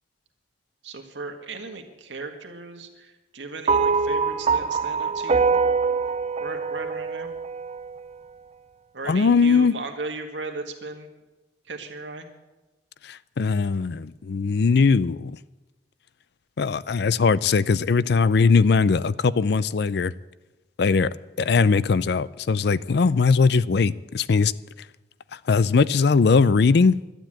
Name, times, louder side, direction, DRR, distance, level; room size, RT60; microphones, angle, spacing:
voice 1, 0.8-5.6 6.4-7.3 8.9-11.1 11.7-12.3, right 3 dB, 85° right, 4 dB, 1.8 m, -36 dB
sound 1, 3.7-8.1, right 5 dB, 35° right, 0.5 m, -24 dB
voice 2, 9.1-9.7 13.0-15.4 16.6-20.1 20.8-21.1 21.4-24.5 25.5-27.0, left 4 dB, 65° left, 18 dB, 0.5 m, -20 dB
12.0 x 9.7 x 8.8 m, 1.1 s
head